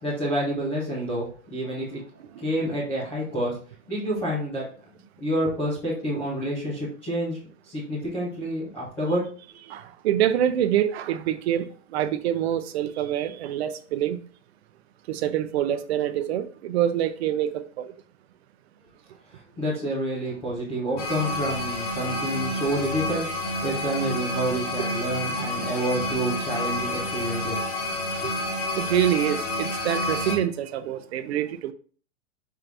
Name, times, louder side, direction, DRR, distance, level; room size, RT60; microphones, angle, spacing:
voice 1, 0.0-2.0 2.4-3.5 3.9-4.7 5.2-7.4 7.7-9.2 19.6-23.2 23.6-27.6, right 1 dB, 5° left, 0.3 m, -28 dB
voice 2, 9.7-14.2 15.1-17.9 25.4-25.5 28.2-28.3 28.8-31.7, right 11 dB, 60° right, 0.5 m, -26 dB
sound 1, 21.0-30.4, left 1 dB, 40° left, 1.2 m, -29 dB
4.7 x 2.5 x 3.3 m
supercardioid pair, 160°, 37 cm